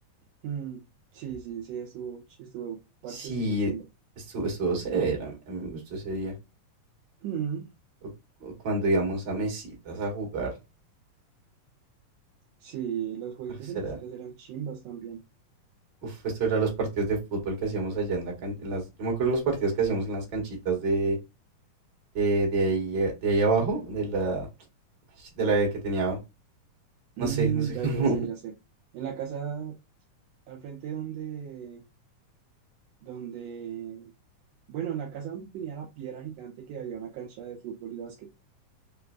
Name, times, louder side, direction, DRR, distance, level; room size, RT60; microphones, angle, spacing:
voice 1, 0.4-0.8 1.1-3.8 7.2-7.7 12.6-15.2 27.2-28.5 28.9-29.8 30.5-31.8 33.0-34.1 34.7-38.3, right 8 dB, 80° right, 1.4 m, -35 dB
voice 2, 3.1-3.7 4.3-6.3 8.4-10.5 13.8-14.0 16.0-21.2 22.1-24.5 25.4-26.2 27.2-28.2, right 3 dB, 45° right, 1.7 m, -27 dB
5.0 x 2.5 x 2.2 m
omnidirectional pair, 3.8 m